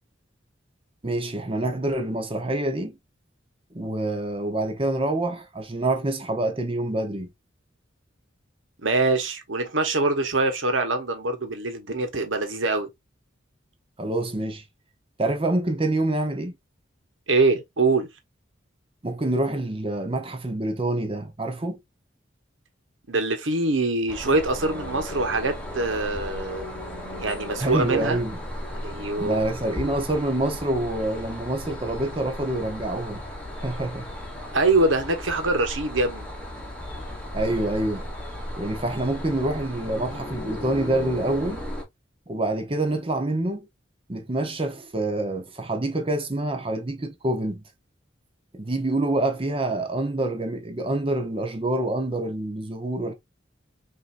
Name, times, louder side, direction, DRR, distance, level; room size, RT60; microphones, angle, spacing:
voice 1, 1.0-3.0 3.7-7.3 14.0-14.6 15.2-16.5 19.0-21.8 27.6-28.4 29.2-33.2 33.6-34.1 37.3-38.1 38.6-41.6 42.3-43.7 44.1-47.6 48.5-53.1, right 2 dB, 30° right, 0.8 m, -26 dB
voice 2, 8.8-12.9 17.3-18.1 23.1-26.7 27.2-28.2 28.8-29.4 34.5-36.3, right 3 dB, 85° right, 1.2 m, -24 dB
sound 1, 24.1-41.8, left 1 dB, 5° left, 1.3 m, -36 dB
5.7 x 2.8 x 2.5 m
head